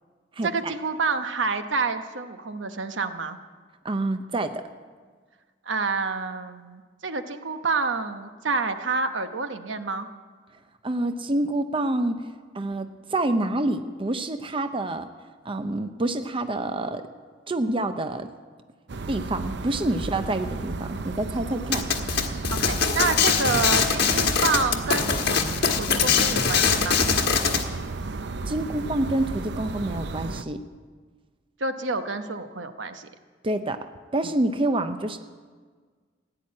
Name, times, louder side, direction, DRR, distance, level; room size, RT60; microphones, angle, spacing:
voice 1, 0.4-3.4 5.7-10.1 22.5-25.2 25.8-27.0 31.6-33.1, right 4 dB, 85° right, 8 dB, 1.0 m, -28 dB
voice 2, 3.8-4.6 10.8-15.1 15.4-17.0 17.5-18.3 19.1-21.9 28.4-30.6 33.4-33.9 34.1-35.2, right 1 dB, 30° right, 8 dB, 0.7 m, -27 dB
sound 1, 18.9-30.4, right 3 dB, 65° right, 0.6 m, -34 dB
sound 2, 21.7-27.6, left 6 dB, 60° left, 1.4 m, -22 dB
16.0 x 9.9 x 8.6 m, 1.5 s
head